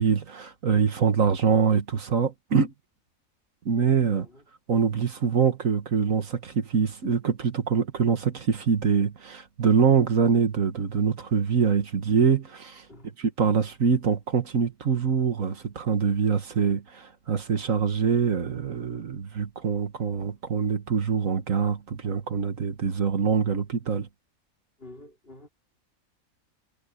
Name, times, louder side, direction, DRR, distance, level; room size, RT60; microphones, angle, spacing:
voice 1, 0.0-2.7 3.7-4.3 4.7-12.9 13.2-24.1, right 6 dB, 65° right, 1.8 m, -24 dB
voice 2, 4.1-4.5 12.9-13.1 24.8-25.5, left 1 dB, 40° left, 4.1 m, -48 dB
omnidirectional pair, 1.5 m